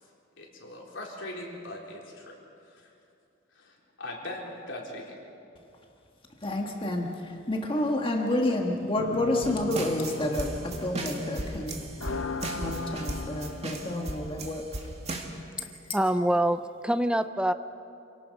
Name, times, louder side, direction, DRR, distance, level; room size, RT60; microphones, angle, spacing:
voice 1, 0.4-2.4 2.7-2.9 3.5-5.2, left 1 dB, 65° left, -2 dB, 4.0 m, -40 dB
voice 2, 6.4-11.8 12.5-14.6 15.6-15.7, left 1 dB, 25° left, 1 dB, 1.6 m, -29 dB
sound 1, 9.0-14.3, left 3 dB, 85° left, 1.1 m, -38 dB
sound 2, 9.4-15.2, right 1 dB, 35° right, 2.1 m, -36 dB
voice 3, 15.9-17.5, right 1 dB, 5° right, 11 dB, 0.5 m, -25 dB
27.5 x 18.0 x 5.3 m, 2.5 s
head